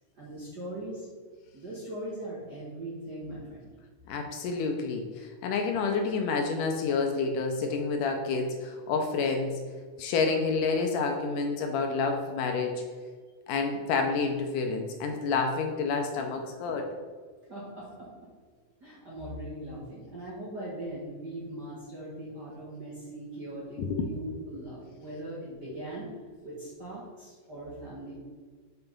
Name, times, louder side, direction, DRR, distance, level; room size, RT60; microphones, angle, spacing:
voice 1, 0.2-1.1 1.5-3.7 17.5-18.1 18.8-26.1 26.4-28.1, right 1 dB, 40° right, -7 dB, 1.5 m, -40 dB
voice 2, 4.1-9.6 10.0-12.8 13.5-16.9 23.8-24.1, left 4 dB, 75° left, 4 dB, 2.1 m, -29 dB
5.8 x 5.8 x 5.3 m, 1.5 s
omnidirectional pair, 4.0 m